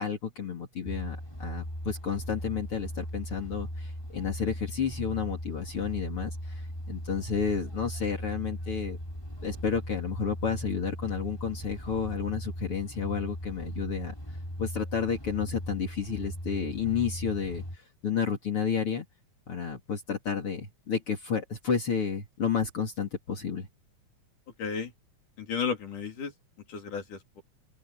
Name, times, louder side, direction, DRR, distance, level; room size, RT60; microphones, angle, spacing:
voice 1, 0.0-6.6 6.9-9.0 9.4-14.1 14.6-17.6 18.0-19.1 19.5-23.7, left 6 dB, 45° left, 3.6 m, -31 dB
sound 1, 0.8-17.8, equal, 5° left, 6.4 m, -38 dB
voice 2, 24.6-24.9 25.4-26.3 26.7-27.4, left 6 dB, 90° left, 5.4 m, -33 dB
open air
omnidirectional pair, 3.5 m